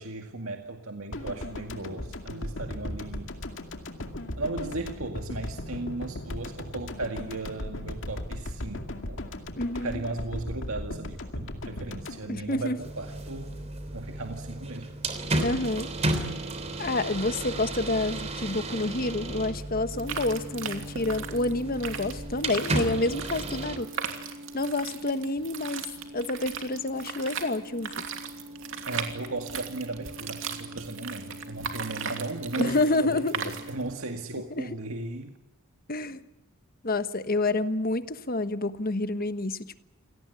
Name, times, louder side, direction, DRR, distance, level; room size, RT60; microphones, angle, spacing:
voice 1, 0.0-3.3 4.3-9.2 9.7-13.5 13.9-14.9 28.9-35.3, right 2 dB, 80° right, 4 dB, 2.1 m, -36 dB
sound 1, 1.1-13.3 13.6-13.7, left 1 dB, 60° left, 2.3 m, -37 dB
voice 2, 9.6-10.0 12.3-12.8 15.4-15.9 16.8-23.9 24.5-25.9 26.1-28.1 32.6-33.3 34.5-34.6 35.9-36.2 36.8-39.8, left 2 dB, 45° left, 11 dB, 1.3 m, -28 dB
sound 2, 12.8-23.8, right 2 dB, 30° right, 3.3 m, -33 dB
sound 3, 19.9-34.0, right 5 dB, 65° right, 2.8 m, -37 dB
28.5 x 18.5 x 8.4 m, 0.98 s
head